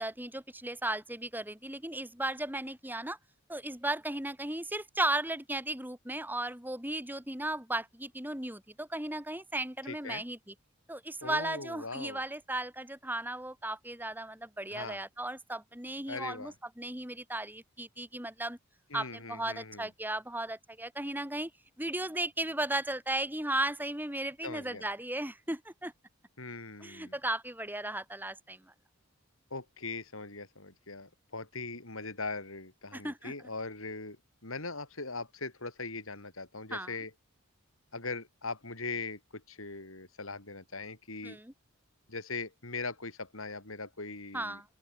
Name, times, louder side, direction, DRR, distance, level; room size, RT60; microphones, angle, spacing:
voice 1, 0.0-3.2 3.5-10.5 10.9-18.6 18.9-21.5 21.8-25.9 26.8-28.6 32.9-33.3 36.7-36.9 41.2-41.5 44.3-44.6, right 1 dB, 10° right, 6.0 m, -35 dB
voice 2, 9.9-10.2 11.2-12.2 14.7-15.0 16.1-16.5 18.9-19.9 24.4-24.9 26.4-27.1 29.5-37.1 37.9-41.4 42.1-44.6, left 3 dB, 80° left, 6.4 m, -40 dB
open air
head